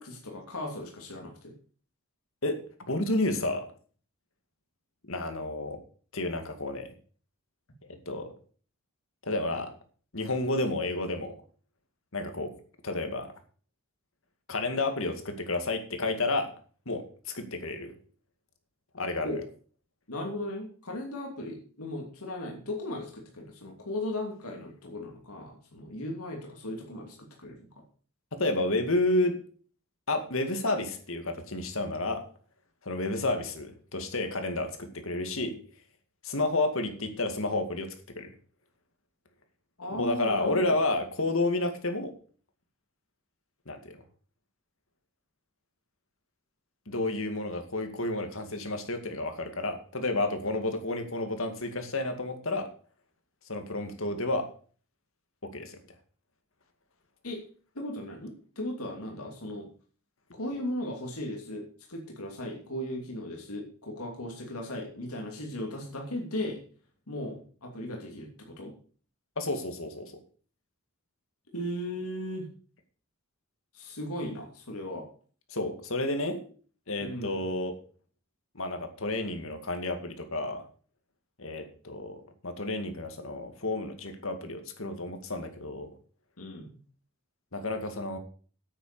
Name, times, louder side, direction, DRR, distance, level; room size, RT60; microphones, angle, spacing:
voice 1, 0.0-1.5 19.2-19.4 20.1-27.6 39.8-40.8 57.2-57.4 57.7-59.7 60.3-66.6 67.1-68.7 71.5-72.5 73.7-75.1 77.0-77.4 86.4-86.8, left 1 dB, 85° left, 1 dB, 2.8 m, -37 dB
voice 2, 2.9-3.7 5.0-5.8 6.1-6.9 7.9-8.3 9.2-9.7 10.1-11.4 12.1-12.5 12.8-13.3 14.5-16.5 16.9-17.9 18.9-19.3 28.3-29.4 30.1-32.2 32.8-35.6 36.2-38.3 39.9-42.1 43.7-44.0 46.9-52.7 53.5-54.5 55.4-55.8 69.4-70.1 75.5-76.4 76.9-77.8 78.5-80.6 81.4-85.9 87.5-88.2, left 2 dB, 65° left, 6 dB, 2.2 m, -31 dB
9.1 x 9.0 x 6.9 m, 0.42 s
head